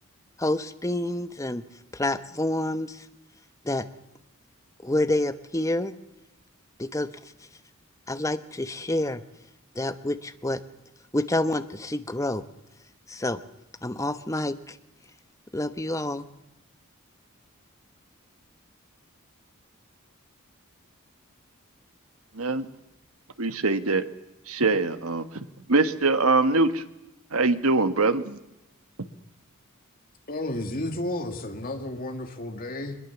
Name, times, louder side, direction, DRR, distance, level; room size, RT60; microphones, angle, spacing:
voice 1, 0.4-1.6 1.9-3.0 3.6-3.9 4.8-5.9 6.8-7.1 8.1-9.2 9.7-10.6 11.1-12.4 13.1-13.4 13.8-14.8 15.5-16.2, left 1 dB, 15° left, 10 dB, 1.0 m, -28 dB
voice 2, 22.3-22.7 23.4-24.0 24.5-26.8 27.3-28.4, right 3 dB, 75° right, 10 dB, 1.4 m, -23 dB
voice 3, 30.3-33.0, left 1 dB, 40° left, 4 dB, 2.1 m, -32 dB
23.0 x 21.0 x 7.2 m, 0.90 s
head